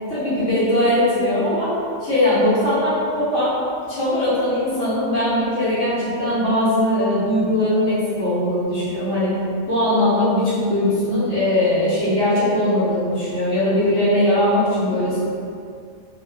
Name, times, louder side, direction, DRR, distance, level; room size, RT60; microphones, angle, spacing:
voice 1, 0.1-1.7 2.0-3.5 3.9-9.3 9.7-15.2, left 1 dB, 85° left, -12 dB, 1.2 m, -20 dB
2.7 x 2.4 x 2.2 m, 2.3 s
omnidirectional pair, 1.2 m